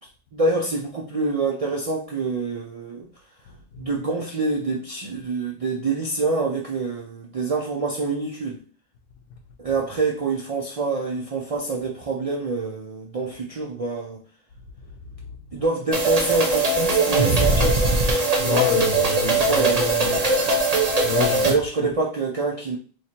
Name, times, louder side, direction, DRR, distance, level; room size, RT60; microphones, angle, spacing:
voice 1, 0.3-3.1 3.8-8.6 9.6-14.2 15.5-17.8 18.4-18.6 19.3-20.6 21.4-22.8, right 3 dB, 60° right, 0.3 m, -26 dB
sound 1, 15.9-21.5, right 2 dB, 40° right, 0.7 m, -20 dB
voice 2, 18.4-20.2 21.0-21.9, left 6 dB, 90° left, 1.0 m, -27 dB
3.1 x 2.4 x 4.2 m
omnidirectional pair, 1.3 m